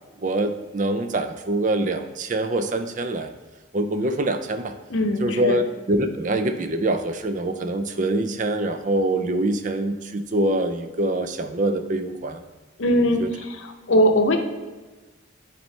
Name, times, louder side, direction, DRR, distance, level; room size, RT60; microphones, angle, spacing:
voice 1, 0.2-3.3 3.7-4.7 5.2-12.4 13.2-13.3, right 1 dB, 40° right, 8 dB, 0.4 m, -24 dB
voice 2, 4.9-5.6 12.8-14.4, equal, 75° left, 6 dB, 0.7 m, -21 dB
9.0 x 4.2 x 3.2 m, 1.2 s
head